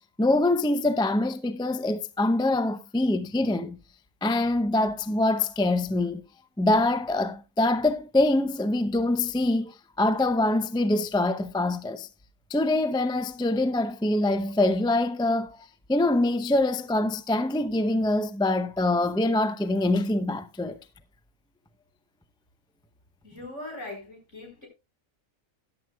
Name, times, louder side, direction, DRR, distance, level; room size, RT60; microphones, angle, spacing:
voice 1, 0.2-3.8 4.2-6.2 6.6-12.1 12.5-20.8, left 2 dB, 5° left, 0.4 m, -24 dB
voice 2, 23.2-24.7, left 2 dB, 60° left, 5.1 m, -40 dB
14.0 x 11.0 x 2.3 m
omnidirectional pair, 1.4 m